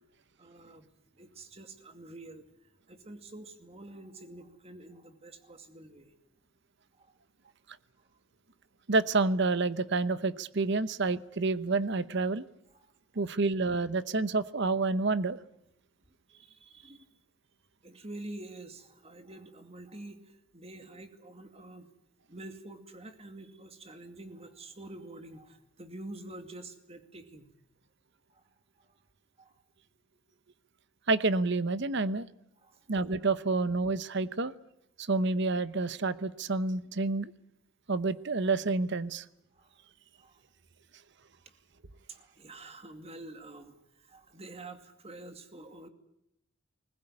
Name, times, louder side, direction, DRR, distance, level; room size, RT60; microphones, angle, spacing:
voice 1, 0.4-0.9 1.2-2.4 2.9-6.1 7.0-7.1 12.7-13.2 16.3-17.1 17.8-21.9 22.3-27.5 29.4-29.5 32.6-32.8 39.5-39.7 40.2-40.4 42.1-45.9, right 2 dB, 30° right, 7 dB, 2.4 m, -47 dB
voice 2, 8.9-12.4 13.2-15.4 31.1-32.3 32.9-34.5 35.0-37.3 37.9-39.2, right 3 dB, 55° right, 15 dB, 0.9 m, -28 dB
20.5 x 20.5 x 9.9 m, 0.78 s
head